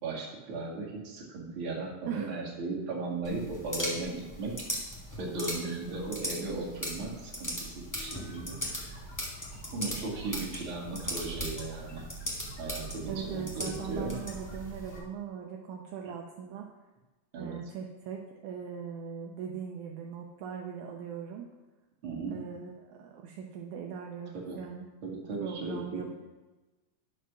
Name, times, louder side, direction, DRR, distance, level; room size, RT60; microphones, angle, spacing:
voice 1, 0.0-4.5 5.2-9.0 9.7-12.0 12.6-14.1 17.3-17.6 22.0-22.4 24.4-24.6 25.0-26.1, right 3 dB, 45° right, -2 dB, 2.5 m, -36 dB
sound 1, 3.2-15.0, equal, 10° left, 1.2 m, -39 dB
sound 2, 7.9-15.0, right 1 dB, 40° left, 1.6 m, -49 dB
voice 2, 13.1-16.7 17.4-21.5 22.3-24.9 25.4-26.1, right 7 dB, 75° right, 2 dB, 2.0 m, -40 dB
11.0 x 4.8 x 6.1 m, 1.1 s
omnidirectional pair, 3.7 m